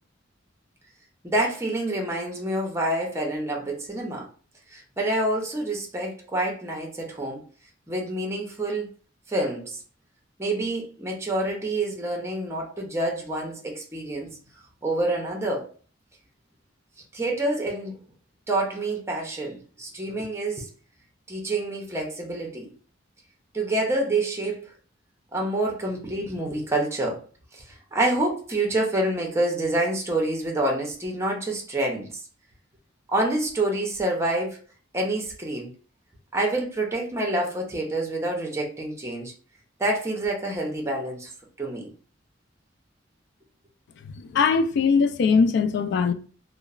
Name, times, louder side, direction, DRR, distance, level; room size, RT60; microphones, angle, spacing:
voice 1, 1.2-4.3 4.7-7.4 7.9-8.9 9.3-9.8 10.4-14.4 14.8-15.7 17.1-18.0 18.5-20.7 21.3-22.7 23.5-24.7 25.3-27.2 27.5-27.6 27.9-32.2 33.1-34.6 34.9-35.7 36.3-39.3 39.8-41.3 41.6-41.9, right 1 dB, 15° right, 0.6 m, -27 dB
voice 2, 44.1-46.1, left 5 dB, 60° left, 0.3 m, -21 dB
2.8 x 2.0 x 2.4 m
head